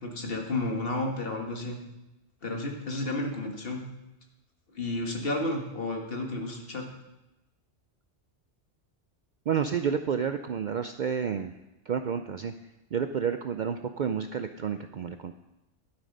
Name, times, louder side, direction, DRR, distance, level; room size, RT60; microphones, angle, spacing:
voice 1, 0.0-1.8 2.4-3.8 4.8-6.9, left 2 dB, 55° left, 2 dB, 1.7 m, -32 dB
voice 2, 9.5-11.5 11.9-12.5 12.9-15.3, right 7 dB, 60° right, 8 dB, 0.5 m, -30 dB
12.0 x 7.6 x 5.3 m, 0.98 s
omnidirectional pair, 1.2 m